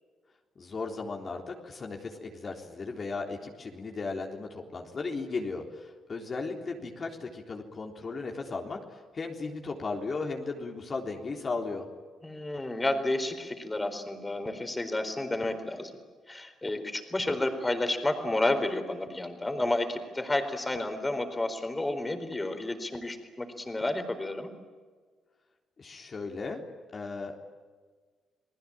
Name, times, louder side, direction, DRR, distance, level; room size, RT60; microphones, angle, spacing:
voice 1, 0.6-11.9 25.8-26.6 26.9-27.4, left 4 dB, 40° left, 2 dB, 3.6 m, -36 dB
voice 2, 12.2-16.0 16.3-24.5, left 2 dB, 15° left, 7 dB, 4.3 m, -31 dB
30.0 x 19.5 x 8.8 m, 1.5 s
cardioid pair, 90°, 0 cm